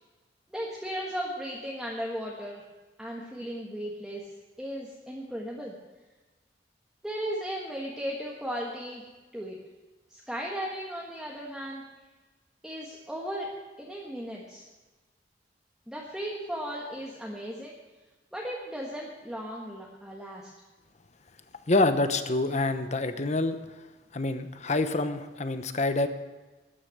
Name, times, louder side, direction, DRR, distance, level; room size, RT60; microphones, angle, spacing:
voice 1, 0.5-2.6 3.0-4.3 4.6-5.7 7.0-9.0 9.3-9.6 10.1-11.8 12.6-14.6 15.9-17.7 18.3-20.5, equal, 5° right, -4 dB, 1.5 m, -36 dB
voice 2, 21.7-23.6 24.1-26.1, left 2 dB, 40° left, 10 dB, 0.9 m, -26 dB
13.5 x 10.0 x 6.6 m, 1.2 s
head